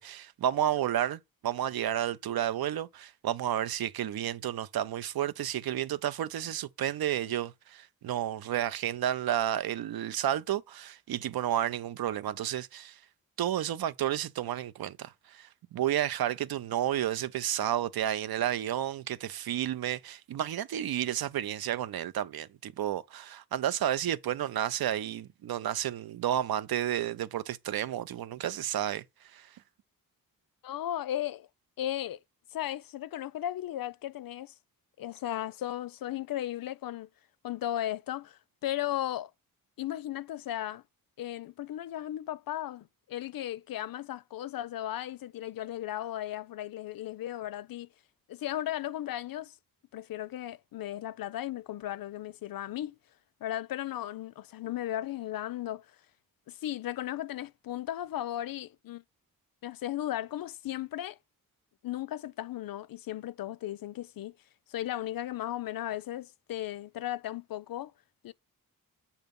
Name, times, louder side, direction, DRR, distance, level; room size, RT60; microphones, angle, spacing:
voice 1, 0.0-13.0 13.4-29.0 29.3-29.5, right 11 dB, 90° right, 0.6 m, -31 dB
voice 2, 30.6-31.5 31.8-32.2 32.5-34.5 35.0-37.1 37.4-39.3 39.8-40.8 41.2-47.9 48.3-49.6 49.9-53.0 53.4-55.9 56.5-59.0 59.6-61.2 61.8-64.4 64.7-67.9 68.2-68.3, left 12 dB, 75° left, 0.5 m, -36 dB
8.0 x 2.9 x 5.2 m
wide cardioid pair, 115°, 35 cm